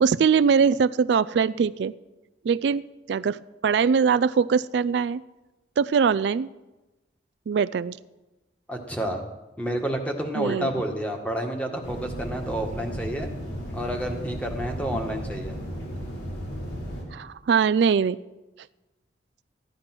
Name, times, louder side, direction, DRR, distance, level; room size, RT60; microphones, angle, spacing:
voice 1, 0.0-1.9 2.4-2.8 3.1-5.2 5.8-6.5 7.5-8.0 10.4-10.7 17.1-18.2, right 6 dB, 70° right, 17 dB, 0.3 m, -22 dB
voice 2, 8.7-9.2 9.6-13.3 13.7-15.5, right 1 dB, 5° left, 3 dB, 1.7 m, -29 dB
sound 1, 11.8-17.0, equal, 70° left, 4.2 m, -34 dB
15.0 x 10.5 x 6.0 m, 1.1 s
head